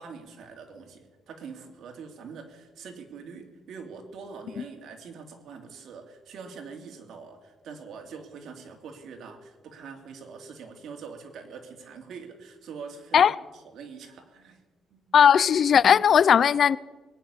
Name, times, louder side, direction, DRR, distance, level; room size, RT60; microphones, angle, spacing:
voice 1, 0.0-14.6 14.9-15.2, right 5 dB, 70° right, 2.6 m, -44 dB
voice 2, 15.1-16.8, left 8 dB, 50° left, 0.4 m, -18 dB
21.0 x 9.7 x 7.1 m
cardioid pair, 125°, 0 cm